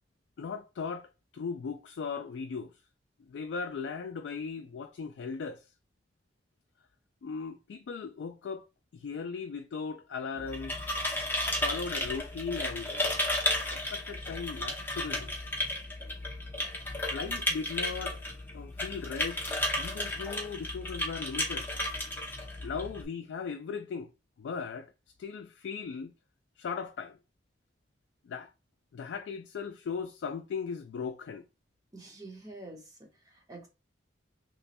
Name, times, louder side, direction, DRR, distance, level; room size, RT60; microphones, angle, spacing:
voice 1, 0.4-2.7 3.3-5.6 7.2-8.7 8.9-10.9 11.6-15.3 17.1-18.2 18.5-19.4 19.8-21.7 22.6-24.1 24.4-24.9 25.2-26.1 26.6-27.2 28.3-28.5 28.9-31.4, left 5 dB, 80° left, 0.3 m, -38 dB
sound 1, 10.4-23.0, left 1 dB, 10° left, 0.8 m, -33 dB
voice 2, 31.9-33.0 33.2-33.7, right 2 dB, 20° right, 0.9 m, -47 dB
3.0 x 2.2 x 4.1 m
head